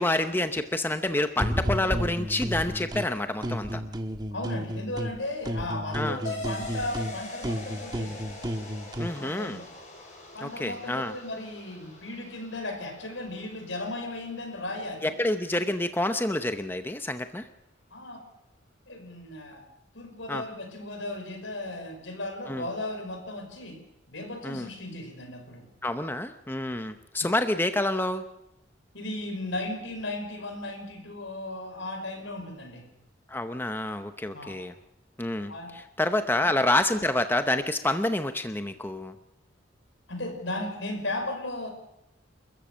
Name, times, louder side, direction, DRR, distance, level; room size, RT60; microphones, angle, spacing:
voice 1, 0.0-3.8 5.9-6.2 9.0-9.6 10.4-11.1 15.0-17.5 20.3-20.4 22.5-22.7 24.4-24.7 25.8-28.2 33.3-34.7 35.2-39.1, left 1 dB, 10° left, 9 dB, 0.8 m, -28 dB
sound 1, 1.4-3.1 3.4-5.2 5.4-9.2, equal, 20° right, 1.4 m, -32 dB
voice 2, 4.3-8.4 9.1-9.7 10.3-15.2 17.9-18.2 18.9-19.6 19.9-25.7 27.2-27.3 28.9-32.9 34.3-34.6 35.5-35.8 36.4-36.5 40.1-41.7, left 2 dB, 75° left, 5 dB, 5.6 m, -36 dB
sound 2, 6.2-15.3, left 2 dB, 35° left, 7.0 m, -43 dB
29.5 x 14.0 x 6.3 m, 0.89 s
head